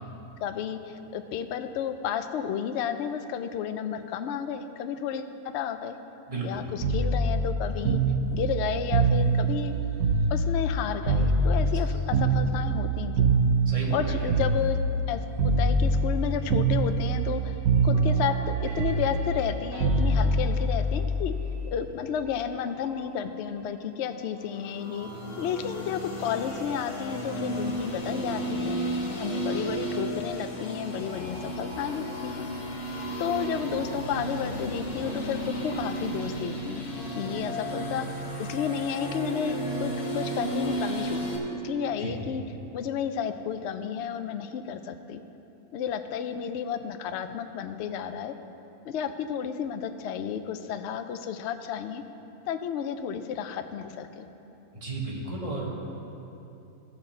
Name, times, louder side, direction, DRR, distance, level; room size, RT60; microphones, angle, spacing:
voice 1, 0.4-5.2 5.5-6.0 6.4-8.0 8.3-9.7 10.3-13.3 13.9-14.8 15.1-17.5 17.8-21.3 21.7-25.1 25.4-28.8 29.2-32.5 33.2-36.8 37.1-38.1 38.4-42.4 42.7-45.2 45.7-48.3 48.8-52.0 52.4-54.3, left 8 dB, 70° left, 8 dB, 0.7 m, -32 dB
voice 2, 6.3-6.6 13.6-14.3 42.0-42.2 54.7-55.7, right 2 dB, 25° right, -4 dB, 1.5 m, -33 dB
sound 1, 6.8-10.8 11.1-15.1 15.4-16.2 16.5-17.4 17.6-21.6 22.9-23.1, right 2 dB, 80° right, 1.6 m, -24 dB
sound 2, 24.5-41.4, right 1 dB, 90° left, 2.0 m, -33 dB
16.0 x 5.9 x 4.3 m, 2.9 s
omnidirectional pair, 1.6 m